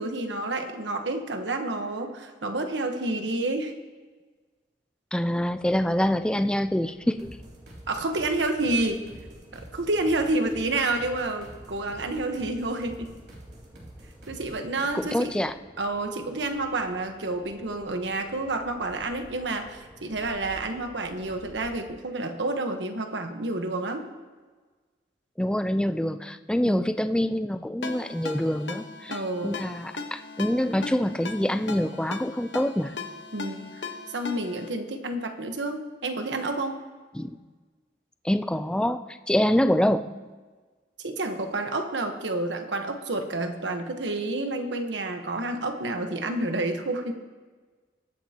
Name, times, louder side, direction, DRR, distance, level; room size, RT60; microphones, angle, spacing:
voice 1, 0.0-3.7 7.9-9.0 9.5-13.1 14.3-15.3 15.8-24.1 26.6-26.8 29.1-29.6 33.3-33.8 34.1-36.8 41.0-47.1, right 2 dB, 80° right, 5 dB, 1.2 m, -29 dB
voice 2, 5.1-7.3 14.9-15.5 25.4-33.0 37.1-37.4 38.2-40.1, equal, 5° left, 10 dB, 0.4 m, -26 dB
sound 1, 5.4-21.8, equal, 20° right, 2.1 m, -52 dB
sound 2, 7.2-14.7, right 1 dB, 65° right, 3.0 m, -47 dB
Ringtone, 27.8-34.7, left 4 dB, 75° left, 1.2 m, -38 dB
22.0 x 9.0 x 2.9 m, 1.4 s
head